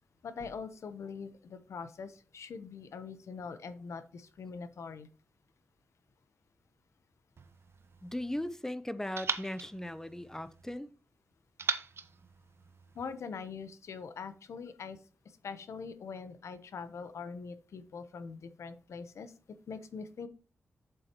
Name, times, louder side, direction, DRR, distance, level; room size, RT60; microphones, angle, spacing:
voice 1, 0.2-5.1 12.9-15.0 15.4-19.3 19.7-20.3, left 5 dB, 80° left, 0.9 m, -43 dB
sound 1, 7.4-8.6 9.2-10.8 11.6-13.2, right 5 dB, 55° right, 0.9 m, -40 dB
voice 2, 8.0-10.9, left 1 dB, 10° left, 0.7 m, -38 dB
7.9 x 7.8 x 3.0 m
cardioid pair, 70°, 5 cm